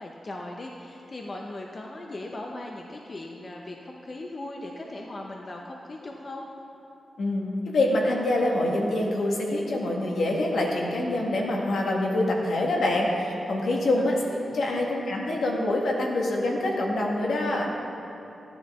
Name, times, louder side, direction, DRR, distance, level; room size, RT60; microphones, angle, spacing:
voice 1, 0.0-6.5 14.0-14.4, left 2 dB, 35° left, 0 dB, 0.8 m, -38 dB
voice 2, 7.2-14.2 14.5-17.7, left 1 dB, 75° left, -1 dB, 1.7 m, -25 dB
15.0 x 10.0 x 3.7 m, 3.0 s
wide cardioid pair, 115°, 0 cm